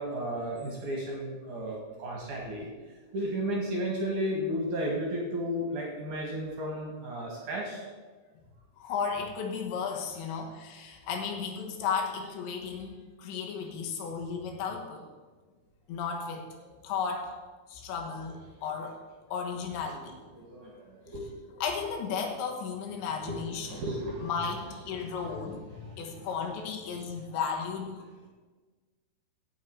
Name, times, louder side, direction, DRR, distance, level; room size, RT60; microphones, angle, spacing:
voice 1, 0.0-2.7 3.1-7.8 10.3-10.4 12.8-12.9 13.6-13.7 19.5-21.4 23.2-26.6 26.9-27.1, equal, 55° right, -2 dB, 2.6 m, -35 dB
voice 2, 8.8-15.0 15.9-17.3 17.7-19.0 19.3-20.1 21.6-23.8 24.2-25.7 26.0-28.0, left 6 dB, 75° left, 2 dB, 3.5 m, -34 dB
16.5 x 6.7 x 4.7 m, 1.4 s
omnidirectional pair, 5.3 m